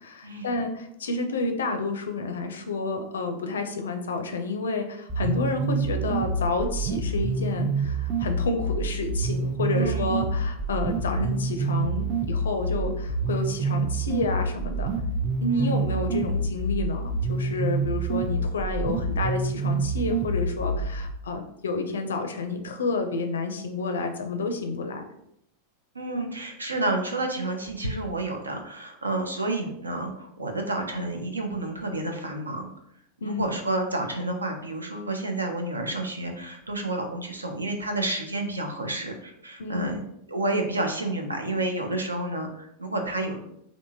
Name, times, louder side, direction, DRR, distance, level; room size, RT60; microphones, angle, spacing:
voice 1, 0.0-14.9 15.4-25.0 33.2-33.6 39.6-40.0, left 3 dB, 65° left, 6 dB, 0.4 m, -30 dB
sound 1, 5.1-21.1, right 3 dB, 25° right, 0.5 m, -27 dB
voice 2, 9.7-10.1 15.5-15.8 25.9-32.7 33.2-40.0 40.3-43.4, right 2 dB, 80° right, 4 dB, 0.5 m, -30 dB
3.5 x 2.6 x 2.7 m, 0.76 s
figure-of-eight pair, 90°, 0 cm